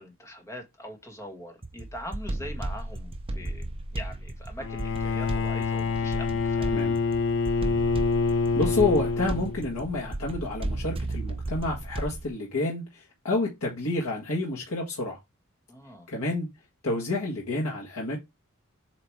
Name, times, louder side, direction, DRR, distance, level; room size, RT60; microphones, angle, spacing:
voice 1, 0.0-6.9 15.7-16.1, equal, 15° left, 1.5 m, -42 dB
sound 1, 1.6-12.3, right 1 dB, 25° right, 0.7 m, -34 dB
Bowed string instrument, 4.6-9.9, left 4 dB, 60° left, 0.6 m, -27 dB
voice 2, 8.5-15.2 16.1-16.5 16.8-18.2, left 2 dB, 85° left, 1.6 m, -29 dB
7.6 x 3.0 x 4.6 m
head